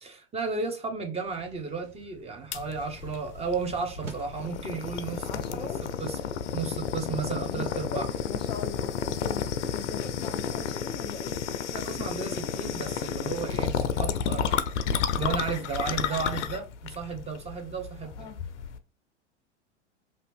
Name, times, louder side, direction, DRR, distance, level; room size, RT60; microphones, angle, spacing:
voice 1, 0.0-5.7 6.0-6.2 6.5-8.1 11.7-14.6 15.2-18.3, right 4 dB, 15° right, 0.7 m, -33 dB
sound 1, 1.2-4.6, right 3 dB, 85° right, 1.0 m, -46 dB
sound 2, 2.5-18.8, left 7 dB, 75° left, 0.5 m, -31 dB
voice 2, 5.2-5.8 7.5-9.5 9.7-11.4 16.1-16.3 18.0-18.4, left 5 dB, 15° left, 0.3 m, -40 dB
2.7 x 2.5 x 3.4 m
hypercardioid pair, 95°, 36 cm